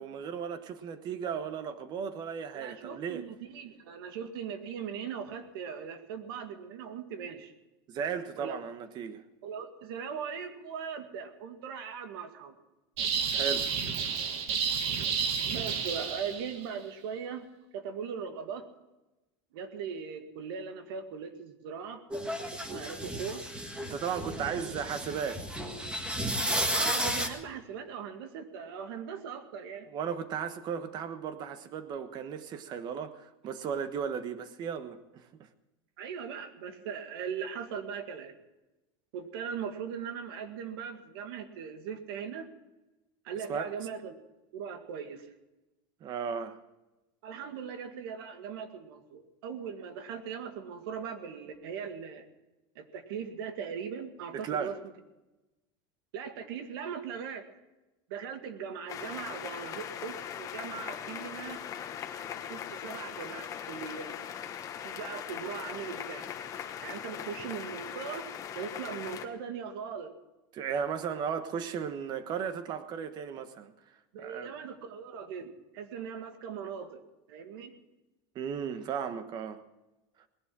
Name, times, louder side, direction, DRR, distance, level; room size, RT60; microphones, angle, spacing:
voice 1, 0.0-3.3 7.9-9.2 13.3-13.7 23.8-25.4 29.8-35.3 43.5-43.7 46.0-46.6 54.3-54.8 70.5-73.7 74.2-74.5 78.3-79.6, right 7 dB, 35° right, 1.2 m, -35 dB
voice 2, 2.5-7.5 8.4-8.6 9.4-12.6 15.5-17.5 17.7-18.7 19.5-22.0 22.5-23.4 24.4-24.6 26.7-29.9 36.0-38.4 39.1-42.5 43.2-44.2 44.5-45.3 47.2-52.3 52.8-54.7 56.1-57.5 58.1-61.6 62.2-64.2 64.8-66.3 66.8-68.3 68.5-70.1 74.1-77.0 77.3-77.7, right 7 dB, 80° right, 2.0 m, -39 dB
sound 1, 13.0-16.6, right 6 dB, 50° right, 1.8 m, -31 dB
sound 2, 22.1-27.3, equal, 10° right, 1.5 m, -33 dB
sound 3, 58.9-69.3, left 9 dB, 25° left, 1.3 m, -40 dB
19.5 x 11.0 x 6.1 m
supercardioid pair, 160°, 12 cm